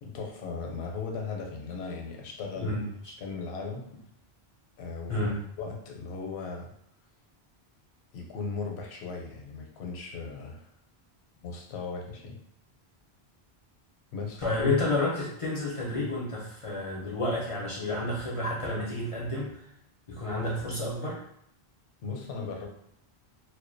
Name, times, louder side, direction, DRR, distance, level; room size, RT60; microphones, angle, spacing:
voice 1, 0.0-2.8 3.2-3.9 4.8-5.3 5.6-6.7 8.1-10.6 11.4-12.4 14.1-14.4 22.0-22.7, left 4 dB, 85° left, 1 dB, 0.8 m, -37 dB
voice 2, 14.4-19.6 20.1-21.2, left 2 dB, 50° left, -4 dB, 0.4 m, -30 dB
2.3 x 2.1 x 2.5 m, 0.73 s
omnidirectional pair, 1.1 m